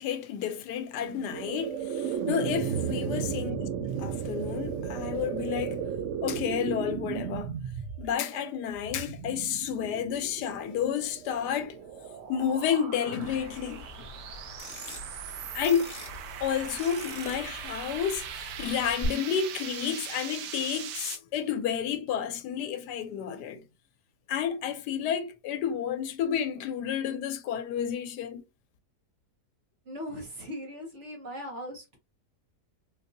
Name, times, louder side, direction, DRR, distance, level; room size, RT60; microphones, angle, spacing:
voice 1, 0.0-3.7 4.0-5.8 6.2-7.5 8.0-11.8 12.3-14.1 15.5-15.9 16.4-23.6 24.3-28.4, left 8 dB, 85° left, 1.1 m, -31 dB
sound 1, 1.0-12.1, right 7 dB, 65° right, 0.7 m, -34 dB
sound 2, 10.6-21.2, right 8 dB, 90° right, 1.2 m, -41 dB
sound 3, 13.2-19.1, left 2 dB, 20° left, 1.2 m, -44 dB
voice 2, 29.8-32.0, equal, 45° right, 1.5 m, -39 dB
3.9 x 2.6 x 2.6 m
omnidirectional pair, 1.7 m